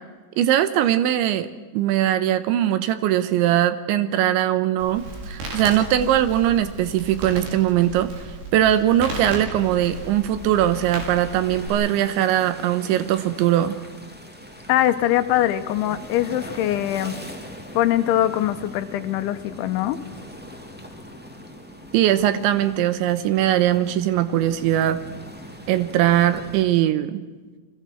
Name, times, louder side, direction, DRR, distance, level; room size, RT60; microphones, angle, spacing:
voice 1, 0.4-1.5 1.7-8.1 8.5-13.8 21.9-25.0 25.7-27.2, right 12 dB, 85° right, 12 dB, 3.3 m, -20 dB
Crackle, 4.8-11.7, right 1 dB, 65° right, 8.1 m, -35 dB
sound 1, 9.5-26.6, equal, 10° right, 0.5 m, -41 dB
voice 2, 14.7-17.2 17.7-20.0, left 13 dB, 85° left, 10 dB, 3.3 m, -22 dB
29.5 x 22.0 x 6.2 m, 1.4 s
omnidirectional pair, 5.4 m